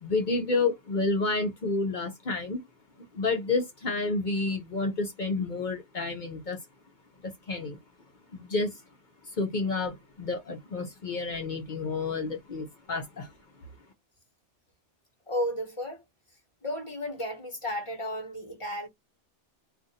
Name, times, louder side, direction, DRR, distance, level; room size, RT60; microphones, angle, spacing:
voice 1, 0.0-2.6 3.1-6.6 7.2-7.8 8.3-8.7 9.4-13.3, left 3 dB, 50° left, 0.7 m, -30 dB
voice 2, 15.3-16.0 16.6-18.9, equal, 25° left, 1.2 m, -33 dB
2.5 x 2.4 x 4.0 m
omnidirectional pair, 1.2 m